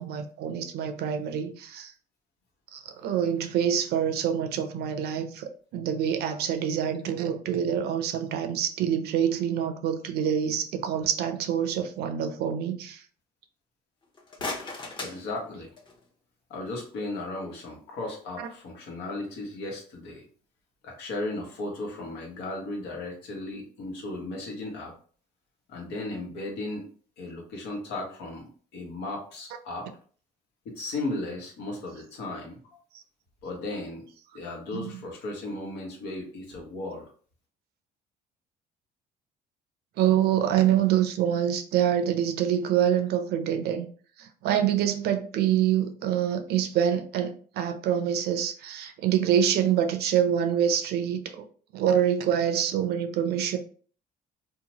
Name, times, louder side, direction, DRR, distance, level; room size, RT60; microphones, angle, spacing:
voice 1, 0.0-1.9 2.7-13.0 34.7-34.9 40.0-43.9 44.2-51.4 51.7-53.6, right 9 dB, 70° right, 0.5 m, -26 dB
sound 1, 14.0-16.1, left 3 dB, 30° left, 0.7 m, -38 dB
voice 2, 15.0-15.7 16.5-20.2 20.8-24.9 25.7-26.9 27.2-29.9 30.6-32.8 33.4-34.0 34.3-37.1, left 2 dB, 80° left, 1.1 m, -36 dB
2.8 x 2.1 x 2.9 m
cardioid pair, 110°, 17 cm